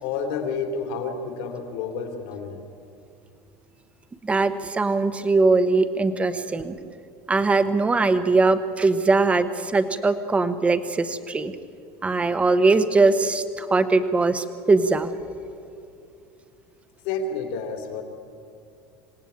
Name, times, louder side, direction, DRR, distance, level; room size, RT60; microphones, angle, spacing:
voice 1, 0.0-2.6 17.0-18.0, left 5 dB, 70° left, 5 dB, 3.2 m, -30 dB
voice 2, 4.2-6.7 7.3-11.5 12.0-15.1, right 3 dB, 10° right, 11 dB, 1.0 m, -21 dB
26.5 x 18.0 x 8.6 m, 2.5 s
cardioid pair, 165°, 10 cm